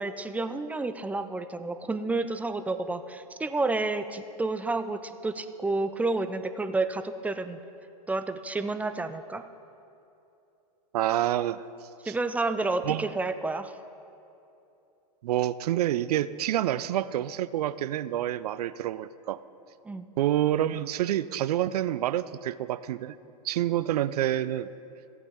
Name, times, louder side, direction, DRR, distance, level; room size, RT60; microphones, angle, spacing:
voice 1, 0.0-7.6 8.1-9.5 12.1-13.7 19.9-20.1, right 3 dB, 5° right, 10 dB, 0.4 m, -30 dB
voice 2, 10.9-11.6 12.0-12.1 12.8-13.1 15.2-19.4 20.2-23.2 23.4-24.7, right 12 dB, 70° right, 16 dB, 0.4 m, -27 dB
15.5 x 8.3 x 3.5 m, 2.8 s
hypercardioid pair, 105°, 20 cm